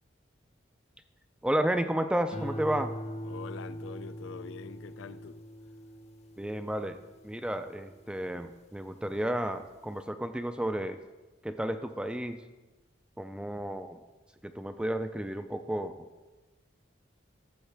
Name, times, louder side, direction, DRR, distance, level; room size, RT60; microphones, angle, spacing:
voice 1, 1.4-2.9 6.4-7.0 7.2-11.0 11.4-12.4 13.2-14.0 14.4-15.9, right 1 dB, 5° right, 9 dB, 0.3 m, -32 dB
sound 1, 2.3-8.8 9.3-9.8, equal, 30° left, 0.7 m, -42 dB
voice 2, 3.2-5.4, left 5 dB, 75° left, 14 dB, 0.4 m, -44 dB
14.0 x 7.2 x 3.4 m, 1.2 s
head